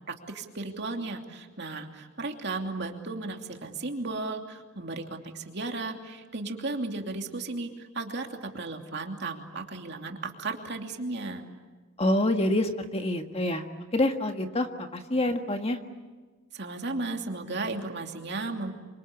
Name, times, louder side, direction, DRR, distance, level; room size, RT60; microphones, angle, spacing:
voice 1, 0.1-11.4 16.5-18.7, right 3 dB, 55° right, 3 dB, 2.8 m, -35 dB
voice 2, 12.0-13.6 13.9-15.8, left 1 dB, 30° left, 5 dB, 1.7 m, -26 dB
27.0 x 25.5 x 8.6 m, 1.3 s
head